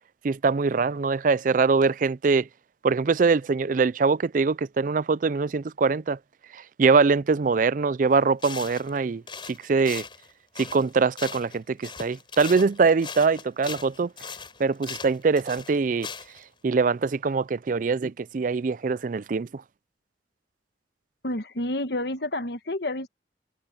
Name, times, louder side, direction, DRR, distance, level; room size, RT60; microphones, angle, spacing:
voice 1, 0.2-2.5 2.8-6.2 6.5-9.2 9.5-10.0 10.6-14.1 14.6-16.1 16.6-19.6, right 4 dB, 45° right, 0.4 m, -23 dB
sound 1, 8.1-8.2 8.4-9.0 9.3-11.6 11.8-16.4, left 5 dB, 30° left, 4.8 m, -39 dB
voice 2, 21.2-23.1, left 1 dB, 65° left, 1.4 m, -29 dB
head